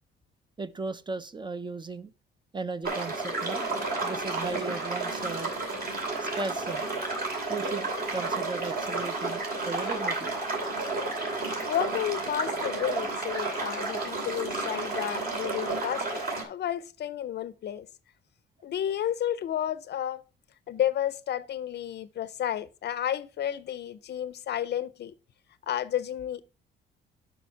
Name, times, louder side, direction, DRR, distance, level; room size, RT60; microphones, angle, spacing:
voice 1, 0.6-2.1 2.5-3.7 4.0-5.6 6.2-6.9 7.5-10.3, right 3 dB, 25° right, 0.5 m, -36 dB
sound 1, 2.8-16.4, right 3 dB, 50° right, 2.7 m, -31 dB
voice 2, 11.6-17.9 18.6-20.2 20.7-25.1 25.7-26.4, left 10 dB, 55° left, 0.5 m, -31 dB
7.0 x 5.7 x 4.6 m
cardioid pair, 90°, 20 cm